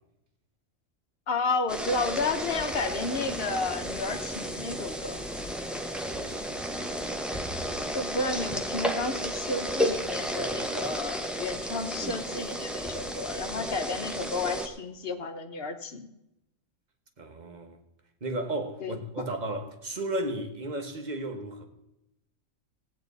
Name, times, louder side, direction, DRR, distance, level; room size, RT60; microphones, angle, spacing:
voice 1, 1.3-5.2 7.9-16.1 18.8-19.3, left 3 dB, 50° left, 1.1 m, -32 dB
sound 1, 1.7-14.7, equal, ahead, 0.7 m, -33 dB
voice 2, 5.9-7.0 17.2-17.8 18.2-21.6, right 1 dB, 35° right, 1.3 m, -35 dB
16.5 x 8.8 x 4.0 m
omnidirectional pair, 1.4 m